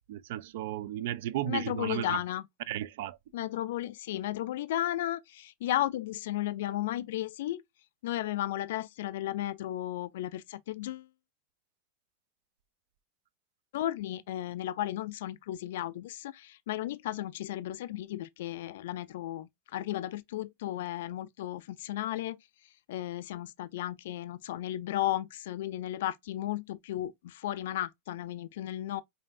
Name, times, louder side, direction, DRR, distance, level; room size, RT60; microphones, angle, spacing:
voice 1, 0.1-2.2 2.7-3.2, right 12 dB, 65° right, 0.4 m, -34 dB
voice 2, 1.5-2.5 3.3-7.6 8.0-11.1 13.7-29.0, left 13 dB, 75° left, 0.3 m, -34 dB
5.3 x 2.5 x 2.5 m
supercardioid pair, 160°, 0 cm